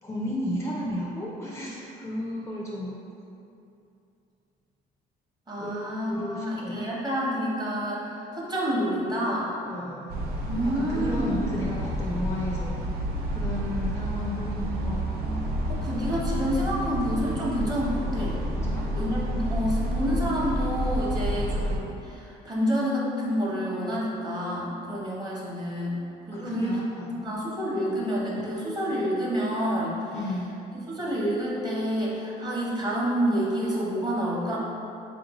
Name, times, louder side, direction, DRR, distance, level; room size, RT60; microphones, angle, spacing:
voice 1, 0.0-2.9 5.6-6.9 9.6-10.2 10.6-12.8 13.3-15.1 18.6-18.9 26.3-27.3 30.1-30.6, left 1 dB, 15° left, -4 dB, 0.4 m, -33 dB
voice 2, 5.5-9.5 10.5-11.5 15.7-18.4 18.9-26.8 27.2-30.0 30.9-34.6, equal, 25° right, -5 dB, 0.9 m, -28 dB
sound 1, 10.1-21.8, equal, 65° right, 0.5 m, -29 dB
4.1 x 2.5 x 3.0 m, 2.7 s
cardioid pair, 110°, 17 cm